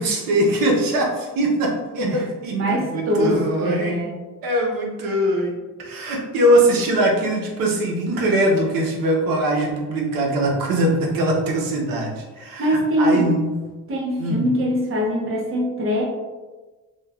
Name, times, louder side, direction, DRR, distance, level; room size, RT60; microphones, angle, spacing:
voice 1, 0.0-4.0 4.4-5.5 5.8-13.5 14.2-14.5, right 1 dB, 80° right, 0 dB, 0.7 m, -21 dB
voice 2, 2.5-4.1 12.6-13.3 13.9-16.0, equal, 40° right, -1 dB, 0.7 m, -22 dB
3.0 x 2.2 x 2.3 m, 1.2 s
cardioid pair, 120°, 34 cm